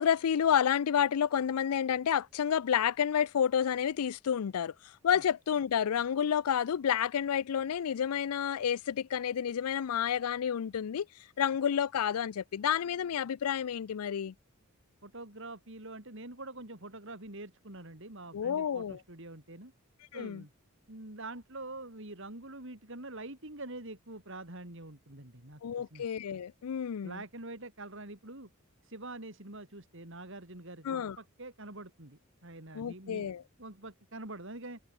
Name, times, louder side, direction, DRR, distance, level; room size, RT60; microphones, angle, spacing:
voice 1, 0.0-11.1 11.4-14.3 18.3-19.0 20.1-20.4 25.6-27.2 30.8-31.2 32.7-33.4, left 8 dB, 85° left, 0.4 m, -30 dB
voice 2, 15.0-19.7 20.1-20.5 20.9-26.1 27.0-28.5 28.8-33.3 33.6-34.8, right 2 dB, 60° right, 3.6 m, -45 dB
head